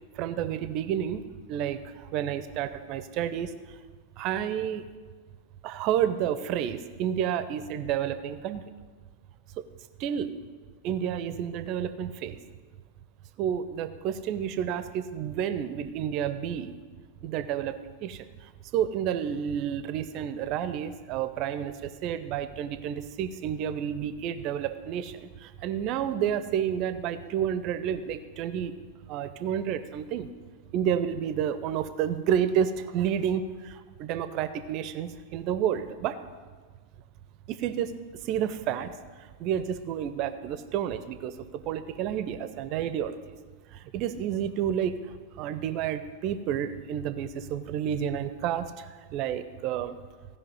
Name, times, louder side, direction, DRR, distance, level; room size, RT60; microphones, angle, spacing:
voice 1, 0.2-3.5 4.2-4.9 5.6-8.6 9.6-9.7 10.0-10.4 10.8-12.4 13.4-16.7 17.2-18.3 18.7-28.7 29.1-30.3 30.7-36.2 37.5-37.9 38.2-38.9 39.4-43.4 43.7-45.0 45.4-48.9 49.1-50.0, right 9 dB, 40° right, 12 dB, 0.6 m, -30 dB
16.0 x 5.4 x 5.4 m, 1.5 s
figure-of-eight pair, 90°, 0 cm